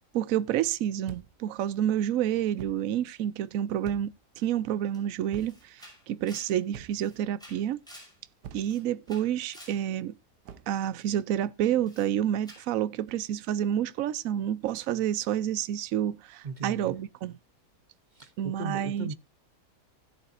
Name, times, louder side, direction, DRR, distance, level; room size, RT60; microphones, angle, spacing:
voice 1, 0.1-7.8 8.5-10.2 10.7-17.3 18.4-19.1, right 10 dB, 65° right, 1.0 m, -29 dB
sound 1, 1.1-1.5 2.6-2.9 3.8-4.3 5.3-5.7 6.7-7.1 8.4-8.8 10.4-10.8, right 8 dB, 80° right, 1.5 m, -45 dB
Camera, 4.9-5.0 5.4-8.2 8.5-9.8 11.8-12.1 12.4-12.7, equal, ahead, 5.6 m, -51 dB
voice 2, 16.4-17.0 18.1-19.1, right 3 dB, 35° right, 0.9 m, -37 dB
16.0 x 7.4 x 2.6 m
omnidirectional pair, 1.8 m